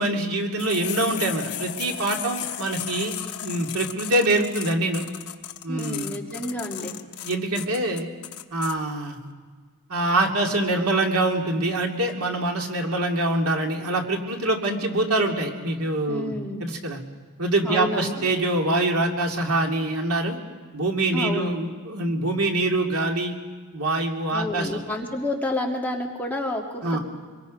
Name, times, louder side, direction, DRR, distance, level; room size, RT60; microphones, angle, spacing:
voice 1, 0.0-3.1 3.4-5.0 5.6-6.1 6.8-6.9 7.2-8.1 8.5-9.2 9.9-16.3 16.6-17.0 17.4-20.4 20.7-23.4 23.7-24.8 26.8-27.0, right 2 dB, 90° right, 1 dB, 2.6 m, -24 dB
sound 1, 0.6-8.7, left 11 dB, 85° left, 0.9 m, -35 dB
voice 2, 5.7-6.9 16.1-16.7 17.6-18.3 21.1-21.5 24.3-27.0, left 1 dB, 10° left, -1 dB, 2.0 m, -29 dB
25.0 x 23.0 x 5.3 m, 1.5 s
head